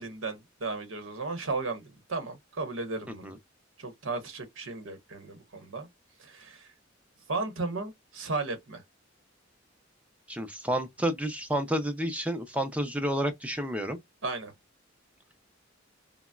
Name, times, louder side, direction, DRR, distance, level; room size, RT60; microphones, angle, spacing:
voice 1, 0.0-3.4 3.8-5.9 6.2-6.7 7.3-8.8 14.2-14.5, right 3 dB, 80° right, 1.0 m, -35 dB
voice 2, 10.3-14.0, right 1 dB, 5° right, 0.5 m, -30 dB
3.8 x 2.0 x 2.2 m
head